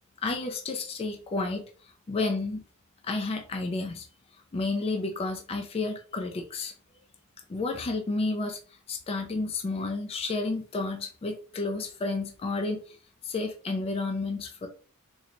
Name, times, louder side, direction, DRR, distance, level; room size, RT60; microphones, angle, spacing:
voice 1, 0.2-1.6 2.1-2.6 3.0-4.0 4.5-6.7 7.5-8.6 8.9-13.0 13.2-14.7, left 3 dB, 25° left, 4 dB, 0.3 m, -31 dB
3.8 x 2.1 x 2.9 m, 0.40 s
head